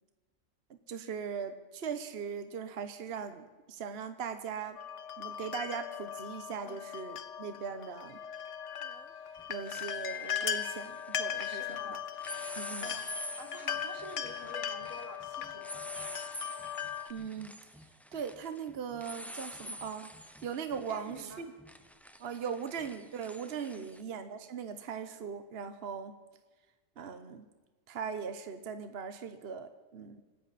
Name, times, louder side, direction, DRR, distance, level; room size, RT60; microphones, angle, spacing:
voice 1, 0.9-4.8 5.2-8.2 9.5-12.0 12.6-12.9 17.1-17.5 18.1-20.1 20.4-21.4 22.2-26.1 27.0-27.4 27.9-30.2, right 6 dB, 55° right, 9 dB, 1.2 m, -39 dB
sound 1, 4.8-17.1, left 9 dB, 70° left, 1.2 m, -38 dB
sound 2, 7.0-7.1 8.8-9.1 9.4-11.8 12.2-24.0, equal, ahead, 0.7 m, -47 dB
voice 2, 11.5-12.0 12.8-13.1 13.4-15.9 20.8-21.5 23.7-23.9, right 2 dB, 85° right, 4 dB, 2.6 m, -49 dB
25.5 x 13.5 x 4.2 m, 1.3 s
omnidirectional pair, 1.3 m